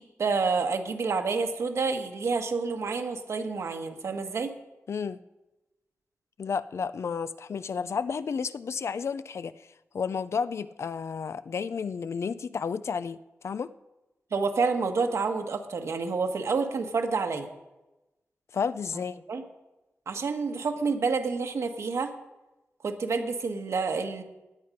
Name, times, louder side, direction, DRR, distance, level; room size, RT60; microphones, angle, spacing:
voice 1, 0.0-4.5 14.3-17.5 19.3-19.4 20.1-22.1 22.8-24.2, right 4 dB, 85° right, 5 dB, 1.4 m, -28 dB
voice 2, 4.9-5.2 6.4-13.2 13.4-13.7 18.5-19.2, left 6 dB, 70° left, 15 dB, 0.5 m, -32 dB
17.0 x 9.7 x 5.2 m, 1.0 s
wide cardioid pair, 100°, 5 cm